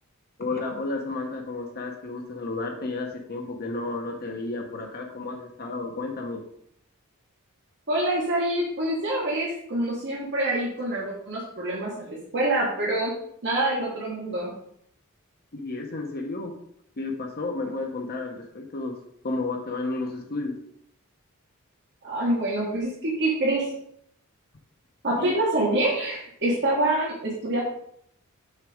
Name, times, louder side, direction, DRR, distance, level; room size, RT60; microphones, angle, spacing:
voice 1, 0.4-6.4 15.5-16.5 17.0-19.0 19.2-20.5 25.2-25.3, left 3 dB, 45° left, 3 dB, 0.9 m, -32 dB
voice 2, 7.9-13.1 13.4-14.5 22.0-23.7 25.0-27.6, right 1 dB, 55° right, -4 dB, 1.5 m, -26 dB
6.6 x 4.1 x 4.9 m, 0.70 s
head